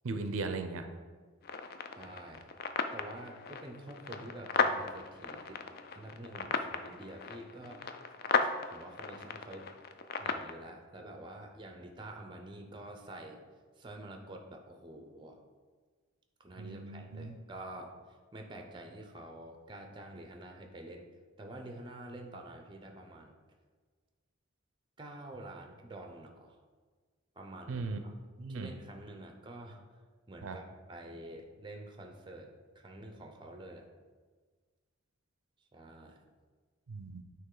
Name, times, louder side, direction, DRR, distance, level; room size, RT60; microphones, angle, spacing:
voice 1, 0.0-0.8 16.6-17.3 27.7-28.0 28.4-28.7 30.4-30.6 36.9-37.2, right 3 dB, 75° right, 7 dB, 0.5 m, -37 dB
sound 1, 1.4-10.5, left 5 dB, 45° left, 0.3 m, -36 dB
voice 2, 2.0-2.5 2.9-5.6 5.9-7.8 8.4-9.7 10.2-13.4 13.8-15.4 16.4-17.9 18.3-21.1 21.4-23.3 25.0-26.6 27.4-28.1 28.5-29.8 30.3-33.9 35.7-36.2, right 1 dB, 20° right, 3 dB, 0.5 m, -48 dB
8.9 x 3.0 x 3.8 m, 1.5 s
head